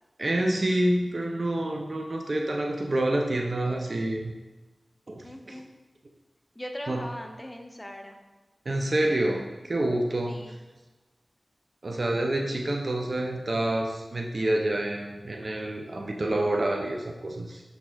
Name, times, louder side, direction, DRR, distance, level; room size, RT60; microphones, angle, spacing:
voice 1, 0.2-4.3 5.1-5.6 6.9-7.0 8.7-10.4 11.8-17.6, right 1 dB, 60° right, 2 dB, 0.4 m, -27 dB
voice 2, 5.2-5.7 6.5-8.2 10.3-10.6, left 1 dB, 20° left, 3 dB, 0.6 m, -40 dB
6.0 x 3.4 x 2.3 m, 1.1 s
cardioid pair, 40°, 0 cm